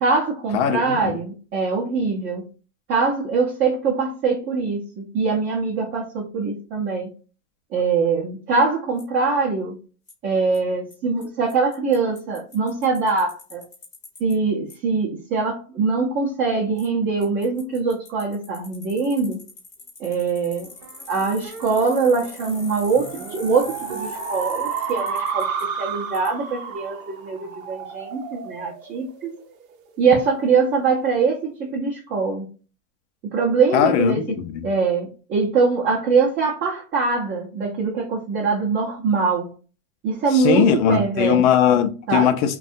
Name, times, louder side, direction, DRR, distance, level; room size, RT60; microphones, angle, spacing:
voice 1, 0.0-2.4 2.9-7.1 7.7-9.8 10.2-13.6 14.2-19.4 20.0-20.7 21.1-29.3 30.0-32.5 33.3-34.2 34.6-39.5 40.0-41.4 42.1-42.3, right 4 dB, 25° right, 0.6 m, -23 dB
voice 2, 0.5-1.2 33.7-34.6 40.3-42.6, left 9 dB, 55° left, 0.6 m, -19 dB
Bicycle, 9.0-9.1 10.1-10.2 10.5-10.6 10.9-11.0 11.2-11.3 11.5-14.3 14.7-14.8 16.8-16.9 17.2-25.6 26.1-26.3, left 3 dB, 15° left, 0.8 m, -43 dB
sound 1, 20.8-29.7, right 6 dB, 70° right, 0.7 m, -32 dB
2.6 x 2.3 x 2.5 m
supercardioid pair, 135°, 42 cm